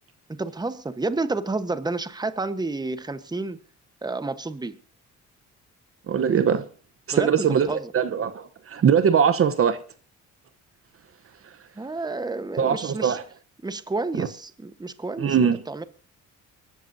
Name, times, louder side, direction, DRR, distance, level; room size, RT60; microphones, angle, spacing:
voice 1, 0.3-3.6 4.0-4.7 7.1-7.9 11.8-13.2 13.6-15.8, right 3 dB, 15° right, 1.1 m, -30 dB
voice 2, 6.1-6.7 7.1-9.8 12.6-13.2 14.2-14.3 15.2-15.6, right 7 dB, 50° right, 0.9 m, -21 dB
24.5 x 13.5 x 2.7 m
cardioid pair, 90°, 30 cm